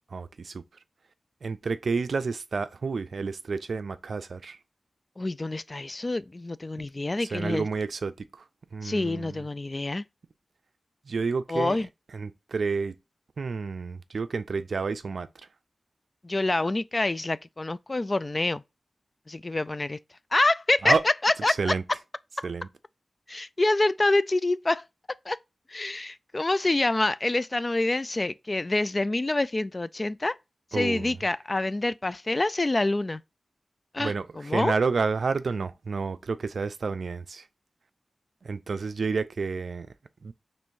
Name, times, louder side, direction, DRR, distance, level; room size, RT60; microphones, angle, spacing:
voice 1, 0.1-0.5 1.4-4.6 7.3-8.1 8.7-9.3 11.1-11.8 12.1-12.9 13.4-15.3 20.8-21.0 21.6-21.8 22.4-22.7 30.7-31.1 34.0-34.3 34.5-37.4 38.4-39.9 40.2-40.3, right 4 dB, 75° right, 0.4 m, -29 dB
voice 2, 5.2-7.7 8.8-10.0 11.5-11.9 16.2-18.6 19.3-20.0 20.3-21.7 22.4-22.5 23.3-24.8 25.3-25.4 25.7-30.4 30.7-33.2 33.9-34.8, left 2 dB, 35° left, 0.3 m, -26 dB
4.5 x 3.1 x 2.5 m
cardioid pair, 55°, 0 cm